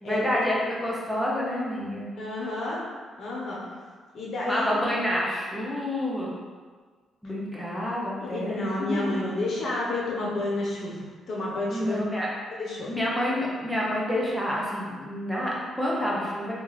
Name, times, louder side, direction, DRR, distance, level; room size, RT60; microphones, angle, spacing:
voice 1, 0.0-2.1 4.4-6.3 7.2-9.2 11.7-12.3 12.9-16.5, left 1 dB, 5° left, -5 dB, 0.9 m, -28 dB
voice 2, 2.2-2.8 3.2-3.6 4.1-4.8 8.3-12.0 12.6-12.9, left 2 dB, 50° left, -5 dB, 1.1 m, -30 dB
3.5 x 2.5 x 3.3 m, 1.5 s
cardioid pair, 90°, 0 cm